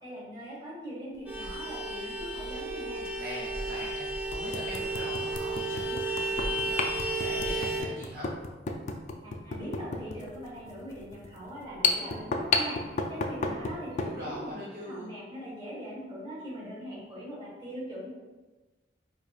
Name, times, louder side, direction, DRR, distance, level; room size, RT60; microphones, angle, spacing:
voice 1, 0.0-3.0 9.2-18.1, equal, 25° right, -6 dB, 1.4 m, -41 dB
sound 1, 1.3-1.5 3.0-3.1 3.7-3.8 4.3-14.2, left 4 dB, 40° left, 0.3 m, -33 dB
Vehicle horn car horn honking, 1.3-7.8, right 2 dB, 5° right, 0.6 m, -33 dB
voice 2, 3.1-8.3 13.4-15.1, equal, 55° right, -6 dB, 0.5 m, -42 dB
4.6 x 2.6 x 2.3 m, 1.2 s
head